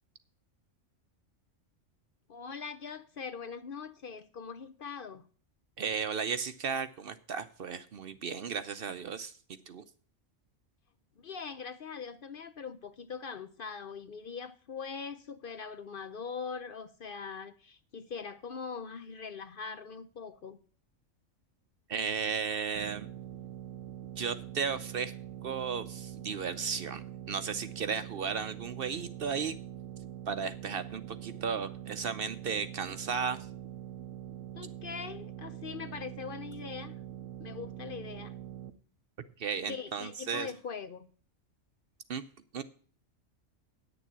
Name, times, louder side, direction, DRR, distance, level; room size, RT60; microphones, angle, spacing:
voice 1, 2.3-5.2 11.2-20.6 34.6-37.0 37.4-38.4 39.7-41.1, left 5 dB, 55° left, 0.7 m, -42 dB
voice 2, 5.8-9.3 9.7-9.8 21.9-23.1 24.2-25.1 25.4-29.6 30.3-33.4 39.4-40.5 42.1-42.2 42.5-42.6, right 6 dB, 55° right, 0.7 m, -34 dB
sound 1, 22.7-38.7, right 11 dB, 85° right, 1.1 m, -44 dB
9.3 x 7.0 x 7.3 m
omnidirectional pair, 1.3 m